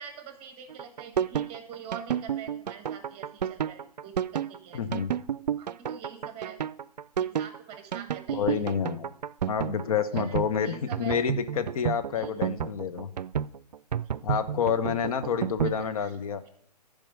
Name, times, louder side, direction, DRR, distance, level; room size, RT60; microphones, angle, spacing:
voice 1, 0.0-5.0 5.6-6.6 7.2-8.6 10.1-10.4 10.6-11.2 12.1-12.5 15.8-16.1, right 7 dB, 25° right, 8 dB, 1.6 m, -44 dB
sound 1, 0.7-15.8, right 9 dB, 75° right, 0.4 m, -30 dB
voice 2, 4.7-5.1 8.3-9.1 9.5-13.1 14.2-16.4, left 7 dB, 60° left, 10 dB, 0.9 m, -28 dB
11.5 x 5.1 x 6.7 m, 0.66 s
figure-of-eight pair, 125°, 21 cm